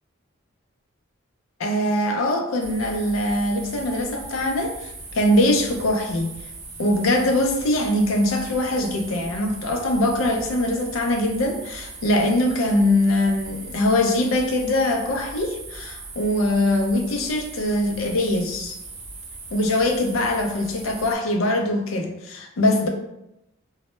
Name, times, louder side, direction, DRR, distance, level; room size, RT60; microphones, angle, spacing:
voice 1, 1.6-6.3 6.8-18.7 19.5-22.9, left 1 dB, 85° left, 3 dB, 0.4 m, -22 dB
sound 1, 2.6-21.2, right 3 dB, 65° right, 0.5 m, -39 dB
2.1 x 2.0 x 3.0 m, 0.86 s
head